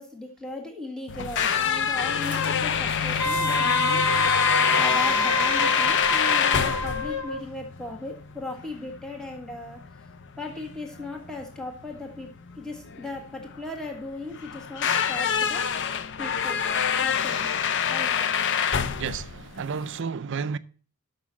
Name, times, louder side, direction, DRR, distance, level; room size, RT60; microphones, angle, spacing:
voice 1, 0.0-4.3 4.8-9.8 10.4-12.3 12.6-15.7 16.2-16.6 17.0-18.1, left 2 dB, 5° left, 1.6 m, -37 dB
sound 1, 1.1-20.0, left 7 dB, 55° left, 0.6 m, -26 dB
Squeak, 1.3-6.6, equal, 25° left, 2.1 m, -43 dB
Wind instrument woodwind instrument, 3.2-7.4, left 2 dB, 85° left, 1.4 m, -26 dB
voice 2, 19.0-20.6, right 6 dB, 55° right, 0.5 m, -31 dB
6.7 x 6.0 x 7.3 m
head